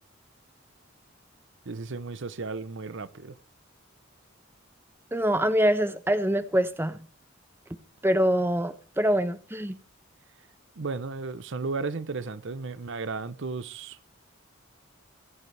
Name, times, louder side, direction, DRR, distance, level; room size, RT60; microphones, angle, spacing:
voice 1, 1.7-3.4 10.8-14.0, right 4 dB, 65° right, 0.7 m, -34 dB
voice 2, 5.1-7.0 8.0-9.7, equal, 10° right, 0.9 m, -24 dB
24.0 x 8.1 x 3.3 m
head